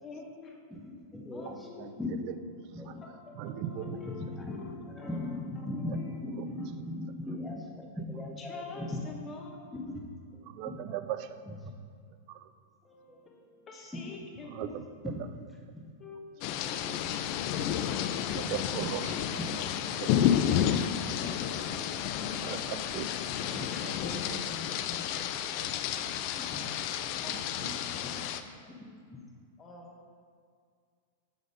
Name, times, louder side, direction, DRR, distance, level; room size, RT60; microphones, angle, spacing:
voice 1, 0.0-0.7 1.3-2.0 2.6-6.9 8.2-10.1 10.7-10.8 12.8-14.9 16.0-17.5 25.2-25.5 28.4-28.7 29.6-30.0, left 4 dB, 25° left, 0 dB, 1.2 m, -48 dB
voice 2, 1.1-1.5 2.0-2.1 2.7-3.0 4.0-4.6 5.0-7.6 8.1-9.0 9.7-10.0 10.3-11.0 11.4-11.7 13.1-13.2 13.9-14.0 15.0-15.4 15.7-15.8 16.8-17.1 19.0-19.6 20.6-22.1 23.3-24.6 26.4-26.7 27.2-28.3 28.7-28.8 29.1-29.2, left 1 dB, 5° left, -1 dB, 1.0 m, -40 dB
voice 3, 3.4-4.0 10.5-11.3 12.4-12.5 14.6-14.8 15.2-15.3 18.3-19.2 19.5-19.6 20.0-20.1 20.6-20.7 22.3-23.5 23.8-23.9 24.2-24.4 25.6-25.7 27.3-27.8, right 11 dB, 50° right, 11 dB, 0.4 m, -38 dB
sound 1, 16.4-28.4, left 10 dB, 50° left, 0.4 m, -31 dB
7.1 x 3.9 x 5.1 m, 2.1 s
hypercardioid pair, 105°, 0 cm